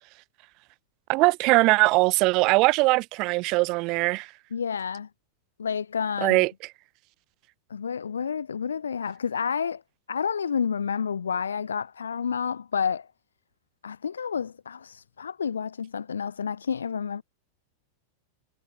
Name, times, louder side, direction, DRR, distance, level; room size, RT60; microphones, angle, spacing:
voice 1, 1.1-4.3 6.2-6.5, right 24 dB, 40° right, 0.4 m, -21 dB
voice 2, 4.5-5.1 5.6-6.4 7.7-9.8 10.1-13.1 13.8-17.2, left 6 dB, 70° left, 1.5 m, -29 dB
figure-of-eight pair, 90°, 0 cm